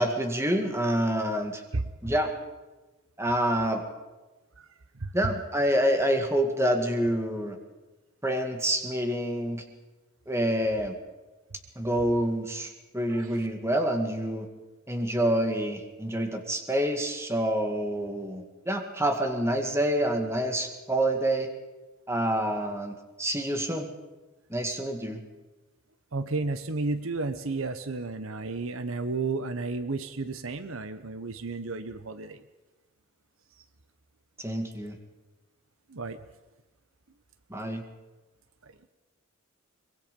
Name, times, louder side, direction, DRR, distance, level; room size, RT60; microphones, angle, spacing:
voice 1, 0.0-1.6 2.0-2.3 3.2-3.8 5.1-7.6 8.2-9.6 10.3-11.0 11.8-14.5 14.9-21.5 22.1-23.9 24.5-25.2 34.4-35.0 37.5-37.8, right 1 dB, 10° right, 4 dB, 2.0 m, -27 dB
voice 2, 4.9-5.3 13.1-13.5 26.1-32.4 35.9-36.2 38.6-38.7, right 3 dB, 65° right, 11 dB, 1.0 m, -32 dB
23.5 x 22.0 x 5.4 m, 1.2 s
head